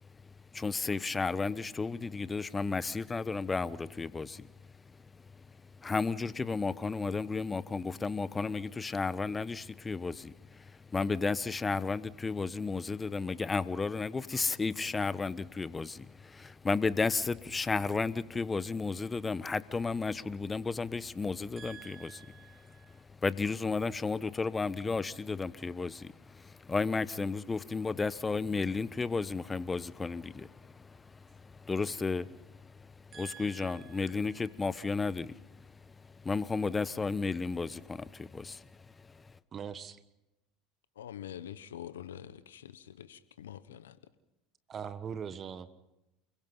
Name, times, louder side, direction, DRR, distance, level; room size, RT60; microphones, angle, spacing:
voice 1, 0.0-4.5 4.8-39.3, left 4 dB, 20° left, 1.0 m, -34 dB
voice 2, 21.6-23.0 33.1-34.5 39.5-40.0 44.7-45.9, right 7 dB, 40° right, 1.4 m, -44 dB
voice 3, 40.9-44.0, left 10 dB, 85° left, 1.0 m, -45 dB
29.0 x 22.0 x 5.6 m
hypercardioid pair, 75°, 0 cm